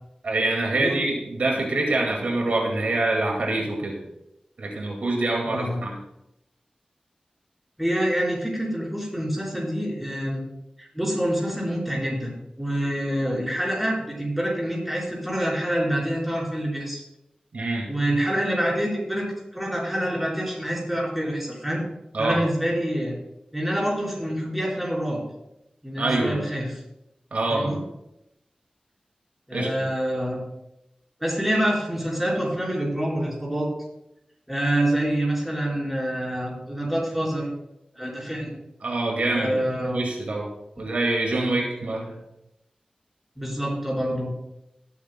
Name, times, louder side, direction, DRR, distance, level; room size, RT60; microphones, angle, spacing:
voice 1, 0.2-4.0 4.6-6.0 17.5-17.9 22.1-22.4 26.0-26.4 27.3-27.8 29.5-29.7 38.8-39.6 39.9-40.5 40.8-42.2, right 2 dB, 85° right, 0 dB, 2.0 m, -25 dB
voice 2, 5.5-5.8 7.8-10.4 10.8-17.0 17.9-19.3 19.5-21.8 22.2-23.1 23.5-25.2 25.8-26.8 27.5-27.8 29.5-30.4 31.2-33.7 34.5-37.5 38.0-38.5 39.3-40.0 41.5-41.6 43.4-44.3, right 1 dB, 5° right, -4 dB, 4.3 m, -26 dB
17.5 x 8.6 x 2.2 m, 0.86 s
wide cardioid pair, 80°, 2 cm